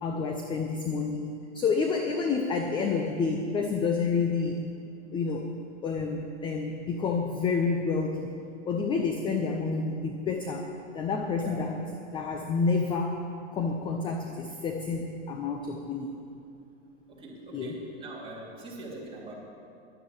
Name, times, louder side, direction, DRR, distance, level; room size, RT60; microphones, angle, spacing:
voice 1, 0.0-4.6 5.1-5.5 5.8-8.3 8.7-10.6 10.9-11.8 12.1-13.2 13.5-16.2 17.5-17.8, left 4 dB, 15° left, 3 dB, 0.5 m, -29 dB
voice 2, 17.1-19.3, right 2 dB, 15° right, -5 dB, 3.1 m, -42 dB
11.0 x 9.4 x 8.2 m, 2.6 s
supercardioid pair, 145°, 37 cm